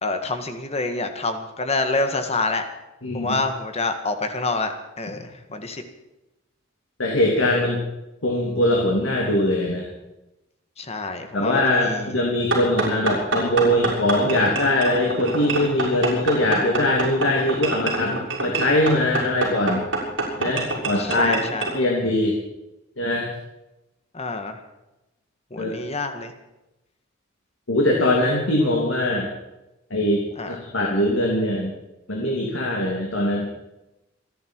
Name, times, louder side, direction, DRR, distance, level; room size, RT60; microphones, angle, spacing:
voice 1, 0.0-2.6 3.1-5.8 10.8-12.2 12.5-12.7 21.0-21.7 24.1-24.6 25.5-26.3 30.4-30.6, left 3 dB, 35° left, 7 dB, 1.8 m, -27 dB
voice 2, 3.0-3.4 7.0-7.8 8.2-9.9 11.3-19.8 20.4-21.4 21.7-22.4 23.0-23.3 25.6-25.8 27.7-29.3 29.9-31.7 32.1-33.5, left 1 dB, 90° left, -1 dB, 3.1 m, -22 dB
sound 1, 12.5-21.8, right 3 dB, 75° right, 6.4 m, -26 dB
27.5 x 11.0 x 4.7 m, 0.95 s
head